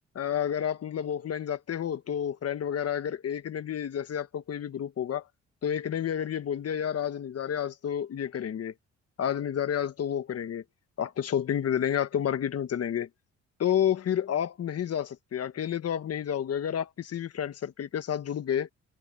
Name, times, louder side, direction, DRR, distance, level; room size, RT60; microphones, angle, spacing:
voice 1, 0.1-5.2 5.6-8.7 9.2-10.6 11.0-13.1 13.6-18.7, left 9 dB, 55° left, 1.4 m, -30 dB
cardioid pair, 90°, 30 cm